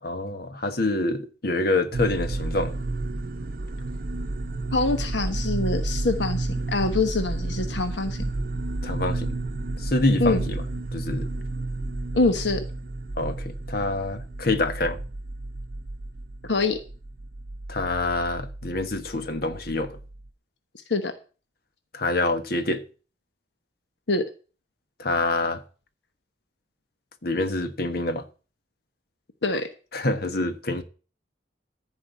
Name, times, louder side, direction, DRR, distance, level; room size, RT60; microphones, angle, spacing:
voice 1, 0.0-2.7 8.8-9.4 9.8-10.6 10.9-11.3 13.2-15.0 17.7-20.0 21.9-22.8 25.0-25.6 27.2-28.2 29.9-30.8, left 2 dB, 60° left, 1.4 m, -26 dB
sound 1, 1.9-20.3, right 2 dB, 50° right, 0.7 m, -31 dB
voice 2, 4.7-8.2 10.2-10.4 12.1-12.6 16.5-16.8 20.9-21.1 24.1-24.3 29.4-29.7, left 3 dB, 80° left, 1.2 m, -24 dB
14.0 x 5.0 x 8.2 m
head